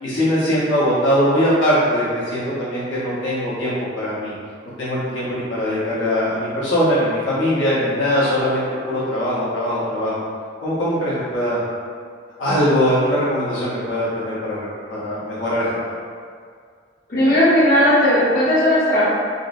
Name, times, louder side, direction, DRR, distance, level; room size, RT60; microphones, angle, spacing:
voice 1, 0.0-4.3 4.8-10.2 10.6-11.6 12.4-15.9, equal, 80° left, -10 dB, 1.0 m, -21 dB
voice 2, 17.1-19.0, equal, 50° left, -12 dB, 0.9 m, -16 dB
3.9 x 2.0 x 2.6 m, 2.1 s
head